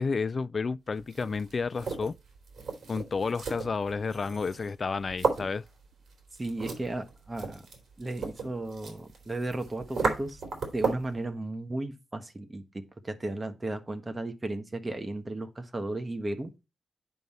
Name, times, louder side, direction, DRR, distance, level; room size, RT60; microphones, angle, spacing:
voice 1, 0.0-2.2 2.9-5.6, left 4 dB, 40° left, 0.4 m, -31 dB
sound 1, 1.0-11.2, right 4 dB, 65° right, 3.2 m, -35 dB
voice 2, 6.4-7.6 8.0-10.4 10.7-16.5, right 2 dB, 20° right, 1.2 m, -35 dB
9.3 x 5.4 x 4.2 m
wide cardioid pair, 115°, 0 cm